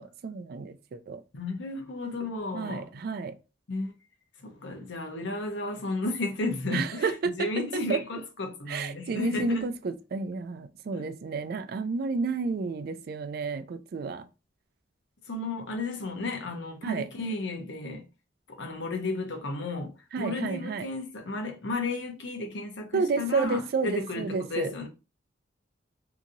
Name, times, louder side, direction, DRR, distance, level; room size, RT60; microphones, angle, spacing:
voice 1, 0.0-1.2 2.5-3.3 6.7-8.0 8.7-14.2 16.8-17.1 20.1-20.9 22.9-24.7, right 4 dB, 55° right, 0.3 m, -31 dB
voice 2, 1.3-2.9 3.7-3.9 4.4-9.7 10.9-11.0 15.3-18.0 18.5-24.9, left 2 dB, 75° left, 0.8 m, -33 dB
2.8 x 2.7 x 2.5 m
head